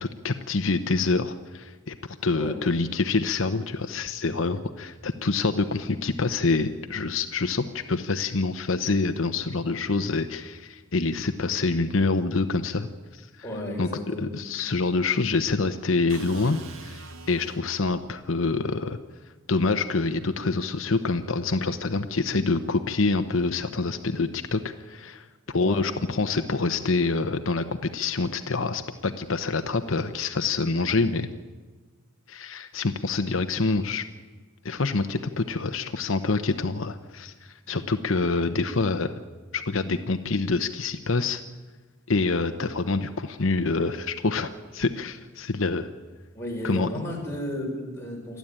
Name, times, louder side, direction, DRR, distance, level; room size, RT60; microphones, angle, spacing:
voice 1, 0.0-1.9 2.2-12.9 13.1-13.3 13.8-19.0 19.5-31.3 32.3-34.0 34.6-39.1 39.5-41.4 42.1-45.9 46.6-46.9, left 3 dB, 70° left, 8 dB, 0.9 m, -26 dB
voice 2, 13.4-14.3 25.5-25.8 46.3-48.4, left 1 dB, 10° left, -2 dB, 5.9 m, -33 dB
sound 1, 16.1-18.0, right 3 dB, 80° right, 2.3 m, -43 dB
29.0 x 11.5 x 8.9 m, 1.4 s
head